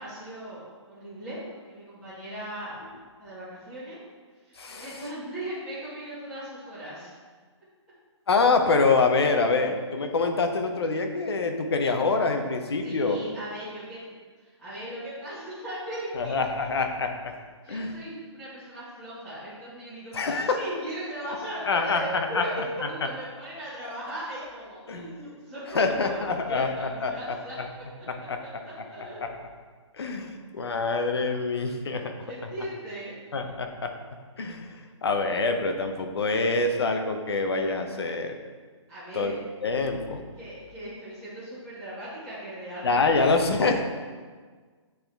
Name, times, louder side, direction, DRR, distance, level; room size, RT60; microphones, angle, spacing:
voice 1, 0.0-2.8 3.2-4.0 4.3-7.1 12.8-14.0 14.4-16.7 17.6-29.2 32.2-33.2 38.9-39.3 40.3-43.6, right 1 dB, 5° left, -18 dB, 1.5 m, -38 dB
voice 2, 4.6-4.9 8.3-13.2 16.2-17.3 17.7-17.9 20.1-20.6 21.7-22.4 24.9-25.1 25.7-27.1 28.1-28.4 29.2-29.3 30.0-32.1 33.3-33.9 34.4-38.3 39.1-39.3 39.6-40.2 42.8-43.8, left 3 dB, 55° left, 5 dB, 0.8 m, -25 dB
9.5 x 3.8 x 3.4 m, 1.5 s
hypercardioid pair, 180°, 16 cm